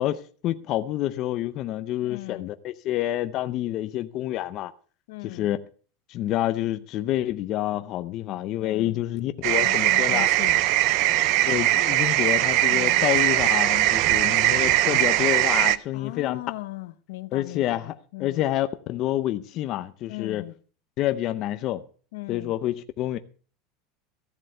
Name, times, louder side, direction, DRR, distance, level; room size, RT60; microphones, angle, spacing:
voice 1, 0.0-4.7 5.2-5.6 6.1-10.3 11.4-16.4 17.3-20.5 21.0-21.8 22.3-23.2, left 14 dB, 35° left, 0.5 m, -28 dB
voice 2, 2.0-2.5 5.1-5.5 8.6-9.0 9.6-10.7 11.0-11.3 12.7-13.1 15.9-18.4 20.1-20.5 22.1-22.5, left 19 dB, 70° left, 0.8 m, -38 dB
sound 1, 9.4-15.8, right 15 dB, 45° right, 0.5 m, -21 dB
14.5 x 7.7 x 6.6 m
supercardioid pair, 180°, 0 cm